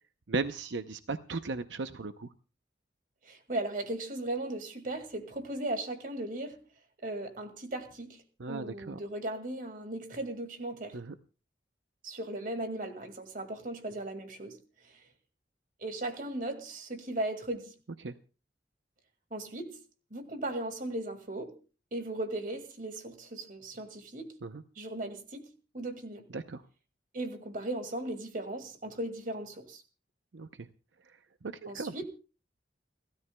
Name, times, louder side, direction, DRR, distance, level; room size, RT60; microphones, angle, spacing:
voice 1, 0.3-2.3 8.4-9.0 10.9-11.1 18.0-18.1 24.4-24.6 26.3-26.6 30.3-30.7 31.4-32.0, right 3 dB, 85° right, 0.7 m, -36 dB
voice 2, 3.2-6.6 7.0-8.2 8.5-11.0 12.0-14.6 14.8-15.0 15.8-17.7 19.3-19.9 20.1-21.6 21.9-24.3 24.8-26.3 27.1-29.8 31.7-32.1, right 1 dB, 45° right, 2.1 m, -37 dB
30.0 x 13.0 x 2.3 m
head